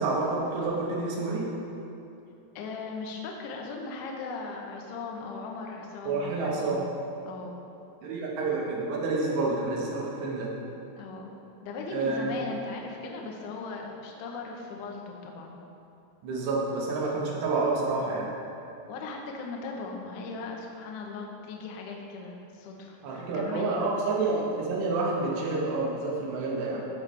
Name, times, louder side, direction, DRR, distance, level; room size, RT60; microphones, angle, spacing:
voice 1, 0.0-1.5 6.1-6.8 8.0-10.5 11.9-12.4 16.2-18.3 23.0-26.8, right 3 dB, 90° right, -4 dB, 3.4 m, -29 dB
voice 2, 2.6-6.8 7.3-7.5 11.0-11.3 11.6-15.6 18.9-23.9, left 4 dB, 75° left, 0 dB, 1.9 m, -38 dB
14.5 x 5.3 x 3.3 m, 2.9 s
omnidirectional pair, 4.8 m